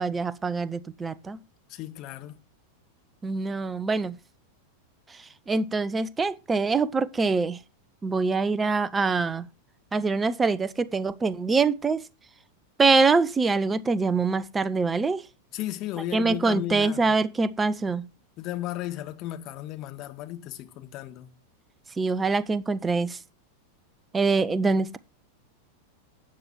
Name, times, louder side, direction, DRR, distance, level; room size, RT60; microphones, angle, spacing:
voice 1, 0.0-1.4 3.2-4.2 5.5-7.6 8.0-9.5 9.9-12.0 12.8-15.2 16.1-18.0 22.0-23.2 24.1-25.0, right 4 dB, 15° right, 0.9 m, -24 dB
voice 2, 1.7-2.3 15.5-17.2 18.4-21.3, left 14 dB, 40° left, 1.9 m, -35 dB
12.5 x 9.0 x 4.7 m
figure-of-eight pair, 90°, 0 cm